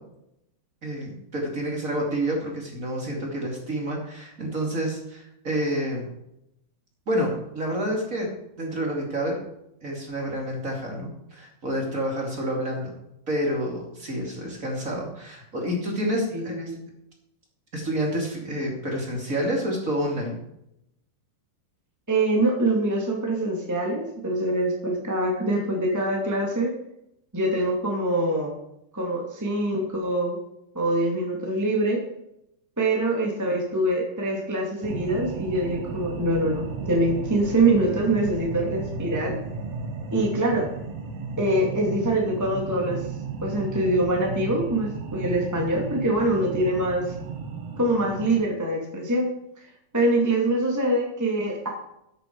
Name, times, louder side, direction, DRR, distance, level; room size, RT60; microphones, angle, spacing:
voice 1, 0.8-6.1 7.1-8.3 8.6-9.4 9.8-12.9 13.3-16.8 17.7-20.4, equal, 25° right, 0 dB, 2.4 m, -28 dB
voice 2, 16.3-16.8 22.1-26.7 27.3-28.5 28.9-30.4 30.7-32.0 32.8-39.4 40.1-40.6 41.4-43.0 43.4-47.1 47.8-49.3 49.9-51.7, right 1 dB, 10° right, -1 dB, 1.2 m, -24 dB
sound 1, 34.8-48.4, right 5 dB, 60° right, 1.7 m, -34 dB
13.5 x 9.6 x 4.7 m, 0.81 s
omnidirectional pair, 4.5 m